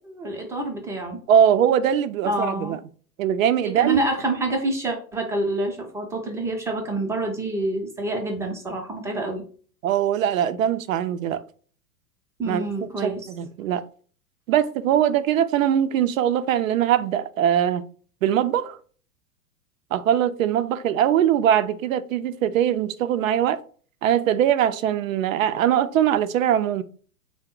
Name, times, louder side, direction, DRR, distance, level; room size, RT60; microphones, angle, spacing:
voice 1, 0.2-1.2 2.2-2.8 3.6-9.4 12.4-13.3, right 2 dB, 5° right, 0.6 m, -27 dB
voice 2, 1.3-2.8 3.2-4.0 9.8-11.4 12.5-12.6 13.0-13.8 14.5-17.8 18.2-18.8 19.9-23.6 24.0-26.8, right 10 dB, 60° right, 0.5 m, -21 dB
3.6 x 2.1 x 3.6 m
hypercardioid pair, 105°, 46 cm